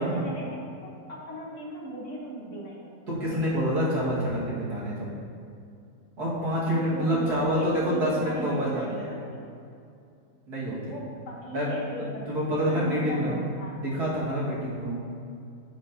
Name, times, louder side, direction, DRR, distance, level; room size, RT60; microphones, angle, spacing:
voice 1, 0.0-2.9 3.2-3.6 6.7-9.4 10.9-13.8, right 1 dB, 50° left, -3 dB, 1.6 m, -37 dB
voice 2, 3.1-5.1 6.2-9.2 10.5-11.0 11.5-11.7 12.0-13.4 13.7-15.0, equal, 80° right, -7 dB, 2.5 m, -27 dB
8.5 x 8.2 x 2.8 m, 2.5 s
omnidirectional pair, 1.7 m